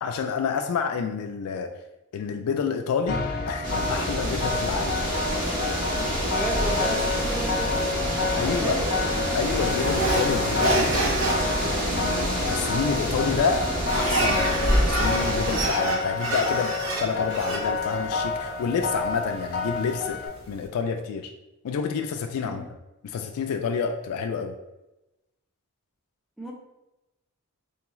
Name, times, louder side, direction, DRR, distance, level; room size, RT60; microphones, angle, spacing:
voice 1, 0.0-1.7 2.1-5.0 8.3-8.8 9.3-11.5 11.9-13.7 13.9-20.2 20.5-21.3 21.6-22.6 23.0-24.5, left 6 dB, 85° left, 5 dB, 0.3 m, -28 dB
sound 1, 3.1-20.3, left 4 dB, 45° left, 0.7 m, -30 dB
sound 2, 3.6-15.7, equal, 40° right, 1.3 m, -27 dB
voice 2, 6.2-7.8 8.4-9.0 22.4-22.7 26.4-26.5, right 1 dB, ahead, -3 dB, 0.7 m, -33 dB
sound 3, 9.8-20.7, right 3 dB, 60° right, 0.7 m, -30 dB
3.8 x 3.5 x 3.0 m, 0.96 s
head